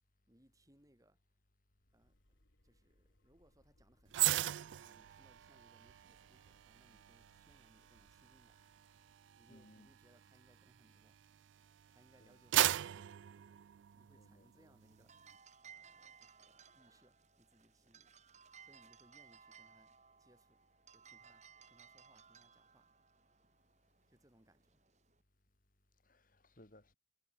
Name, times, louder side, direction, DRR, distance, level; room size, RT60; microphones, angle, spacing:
voice 1, 0.3-1.2 1.9-8.7 9.4-11.2 11.9-13.1 13.9-15.2 15.6-18.1 18.6-20.6 20.9-22.9 24.1-24.8, right 1 dB, 20° right, 3.5 m, -70 dB
sound 1, 1.7-10.6, left 1 dB, 80° left, 2.9 m, -74 dB
sound 2, 4.1-11.5 12.0-14.3 14.7-14.9, right 14 dB, 80° right, 0.3 m, -38 dB
voice 2, 9.5-9.9 12.2-12.4 14.1-14.7 26.1-26.9, left 1 dB, 45° left, 2.7 m, -63 dB
sound 3, 14.8-25.2, right 7 dB, 40° right, 4.4 m, -61 dB
head